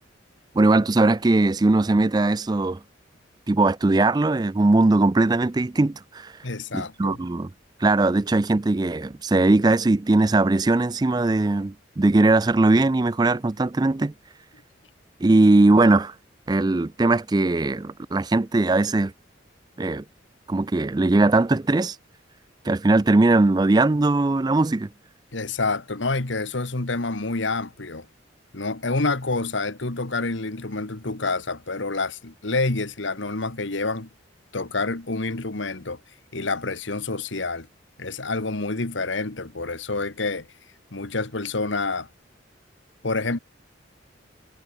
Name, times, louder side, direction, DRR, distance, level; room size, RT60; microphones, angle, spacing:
voice 1, 0.5-2.8 3.5-6.3 6.7-7.5 7.8-14.1 15.2-16.1 16.5-19.1 19.8-20.0 20.5-22.0 22.7-24.9, right 2 dB, 20° right, 0.4 m, -20 dB
voice 2, 6.4-7.2 25.3-28.1 28.5-34.1 34.5-36.0 36.3-37.7 38.0-40.5 40.9-42.1 43.0-43.4, left 3 dB, 75° left, 1.7 m, -28 dB
head